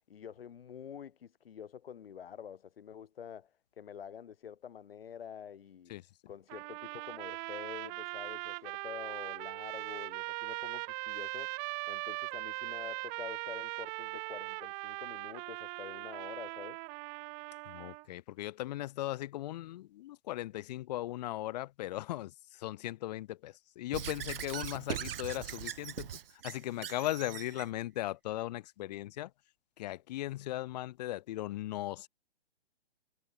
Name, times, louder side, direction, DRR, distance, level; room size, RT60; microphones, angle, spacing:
voice 1, 0.1-3.5 3.8-5.9 6.3-11.6 11.9-16.8, left 8 dB, 65° left, 6.9 m, -47 dB
sound 1, 6.5-18.1, right 40 dB or more, 30° right, 6.2 m, -40 dB
voice 2, 17.7-29.3 29.8-32.1, left 15 dB, 40° left, 1.3 m, -38 dB
Squeak / Writing, 23.9-27.7, right 10 dB, 60° right, 1.0 m, -40 dB
hypercardioid pair, 135°, 32 cm